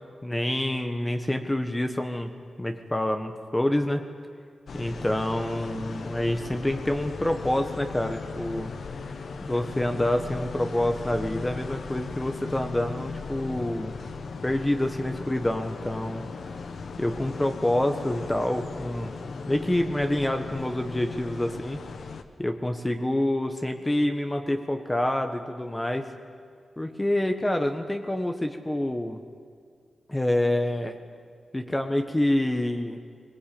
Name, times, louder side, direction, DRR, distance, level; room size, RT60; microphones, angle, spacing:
voice 1, 0.2-2.3 2.6-4.0 4.7-8.7 9.4-13.9 14.4-16.2 17.0-19.1 19.5-21.8 22.4-26.0 26.8-29.2 30.1-31.0 31.5-33.0, left 1 dB, 15° left, 5 dB, 1.5 m, -27 dB
sound 1, 4.7-22.2, left 4 dB, 75° left, 1.4 m, -37 dB
21.5 x 20.0 x 8.7 m, 2.1 s
cardioid pair, 65°, 0 cm